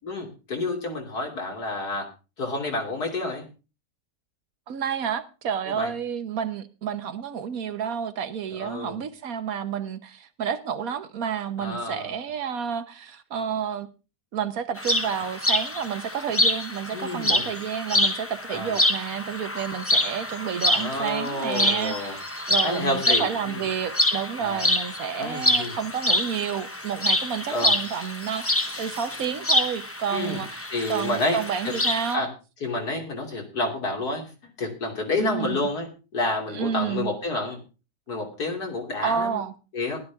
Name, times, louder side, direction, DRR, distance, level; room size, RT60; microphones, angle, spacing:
voice 1, 0.0-2.0 2.4-3.4 5.7-5.9 8.6-9.0 11.6-12.1 16.9-17.5 18.5-18.8 20.7-22.2 22.6-23.7 24.4-24.7 25.2-25.8 27.5-27.7 30.1-30.4 30.7-31.4 31.7-31.8 32.1-32.3 32.6-34.3 34.6-35.9 36.1-37.6 38.1-39.4 39.7-40.0, left 2 dB, 75° left, 3.5 m, -29 dB
voice 2, 4.7-13.9 14.3-32.3 35.2-35.7 36.5-37.1 39.0-39.5, right 8 dB, 65° right, 1.4 m, -30 dB
sound 1, 14.8-32.1, left 1 dB, 15° left, 0.6 m, -26 dB
16.0 x 12.0 x 3.5 m
omnidirectional pair, 1.7 m